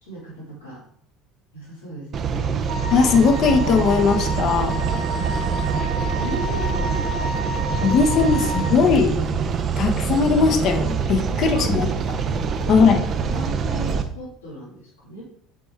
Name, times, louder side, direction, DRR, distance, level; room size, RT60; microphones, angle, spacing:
voice 1, 0.0-0.8 1.5-2.6 5.1-7.8 9.7-9.9 11.3-15.2, equal, 75° left, -6 dB, 2.7 m, -37 dB
sound 1, 2.1-14.0, right 6 dB, 40° right, 0.6 m, -24 dB
Wind instrument woodwind instrument, 2.7-8.8, equal, 60° right, 1.0 m, -31 dB
voice 2, 2.9-4.7 7.8-9.2 9.8-11.9 12.7-13.0, left 5 dB, 45° left, 4 dB, 1.0 m, -19 dB
7.5 x 4.4 x 3.4 m, 0.64 s
figure-of-eight pair, 65°, 0 cm